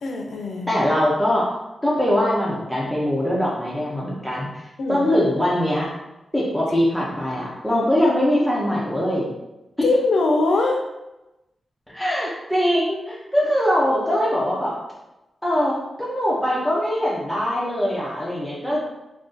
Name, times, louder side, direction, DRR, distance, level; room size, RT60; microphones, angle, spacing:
voice 1, 0.0-0.7 4.8-5.1 9.8-10.8 18.7-18.8, left 3 dB, 70° left, 1 dB, 0.5 m, -21 dB
voice 2, 0.7-1.5 1.8-5.9 6.3-9.3 11.9-14.8 15.4-18.8, equal, ahead, -6 dB, 0.5 m, -22 dB
2.5 x 2.4 x 3.7 m, 0.98 s
wide cardioid pair, 170°, 0 cm